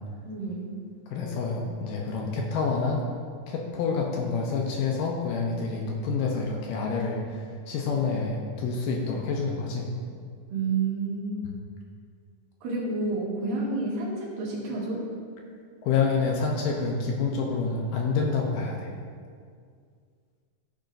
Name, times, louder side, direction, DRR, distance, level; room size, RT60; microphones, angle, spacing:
voice 1, 0.3-0.7 10.5-11.5 12.6-15.1, right 3 dB, 70° right, -5 dB, 3.2 m, -29 dB
voice 2, 1.1-3.0 3.5-9.9 11.4-11.5 15.8-18.9, left 4 dB, 75° left, 0 dB, 2.2 m, -28 dB
14.0 x 6.5 x 2.6 m, 2.1 s
omnidirectional pair, 4.3 m